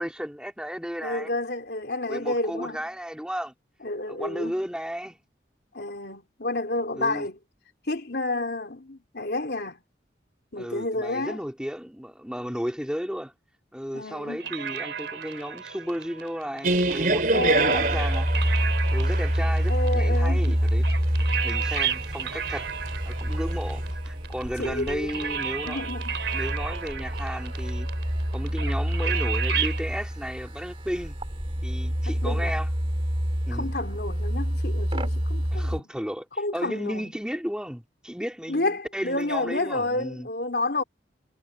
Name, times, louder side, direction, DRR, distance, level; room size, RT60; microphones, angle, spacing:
voice 1, 0.0-1.3 2.1-3.5 4.1-5.2 6.9-7.3 10.6-13.3 13.7-17.2 17.7-18.3 18.9-20.9 21.4-22.7 23.0-25.8 26.3-27.9 28.3-31.2 31.6-32.7 33.5-33.7 35.5-36.3 36.5-40.3, equal, 5° right, 3.3 m, -34 dB
voice 2, 1.0-2.8 3.8-4.6 5.7-7.4 7.9-9.8 10.5-11.4 13.9-14.4 17.3-18.0 19.7-20.6 24.6-26.2 32.1-32.6 33.5-35.8 36.4-37.1 38.5-40.8, left 2 dB, 60° left, 3.6 m, -30 dB
sound 1, 14.4-29.8, right 8 dB, 80° right, 3.7 m, -33 dB
sound 2, 16.6-23.9, right 2 dB, 50° right, 4.4 m, -28 dB
sound 3, 17.7-35.8, equal, 30° right, 2.5 m, -27 dB
head